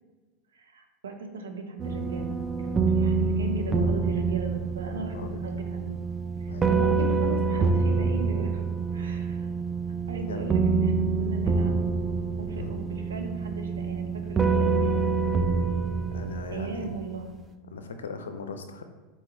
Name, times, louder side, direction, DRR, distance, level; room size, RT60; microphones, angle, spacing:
voice 1, 0.5-2.4 2.6-6.1 6.4-8.6 8.9-9.5 10.1-11.8 12.4-15.1 16.5-17.3, right 3 dB, 80° right, 4 dB, 0.5 m, -37 dB
sound 1, 1.8-17.3, right 4 dB, 25° right, 0.4 m, -26 dB
voice 2, 4.9-5.4 6.5-6.8 10.3-10.6 12.6-12.8 16.1-16.9 17.7-18.8, left 5 dB, 75° left, 8 dB, 0.4 m, -39 dB
4.2 x 3.0 x 3.6 m, 1.3 s
figure-of-eight pair, 80°, 0 cm